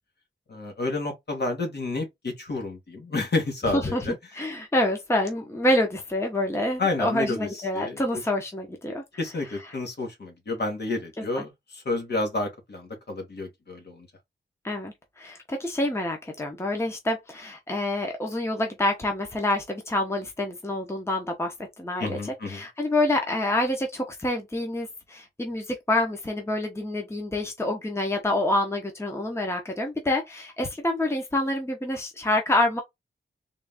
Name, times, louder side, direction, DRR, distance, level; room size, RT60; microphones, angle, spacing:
voice 1, 0.5-4.2 6.8-7.5 7.7-8.0 9.2-14.1 22.0-22.6, left 2 dB, 55° left, 1.5 m, -30 dB
voice 2, 3.7-9.0 11.2-11.4 14.6-32.8, left 1 dB, 15° left, 0.8 m, -27 dB
3.8 x 2.5 x 3.5 m
wide cardioid pair, 140°, 20 cm